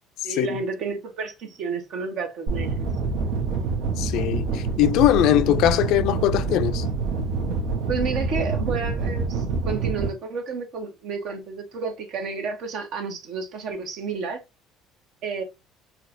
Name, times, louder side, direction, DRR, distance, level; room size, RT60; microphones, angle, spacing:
voice 1, 0.2-2.8 7.9-14.4 15.2-15.4, right 4 dB, 65° right, 1.0 m, -31 dB
sound 1, 2.5-10.1, right 4 dB, 85° right, 1.0 m, -26 dB
voice 2, 4.0-6.8, left 13 dB, 70° left, 0.4 m, -21 dB
4.4 x 2.3 x 2.5 m
supercardioid pair, 90°, 0 cm